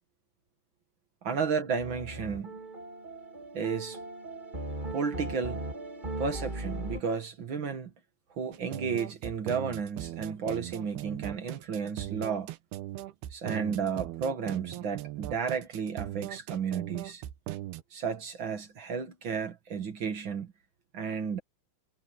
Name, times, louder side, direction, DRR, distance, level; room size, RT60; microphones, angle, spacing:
voice 1, 1.2-2.5 3.5-4.0 4.9-5.6 6.2-7.9 8.4-12.5 13.3-17.2 17.9-20.5 20.9-21.4, right 6 dB, 55° right, 1.3 m, -33 dB
sound 1, 1.8-7.0, right 2 dB, 15° right, 2.4 m, -38 dB
sound 2, 8.5-17.8, right 14 dB, 75° right, 2.8 m, -39 dB
omnidirectional pair, 4.8 m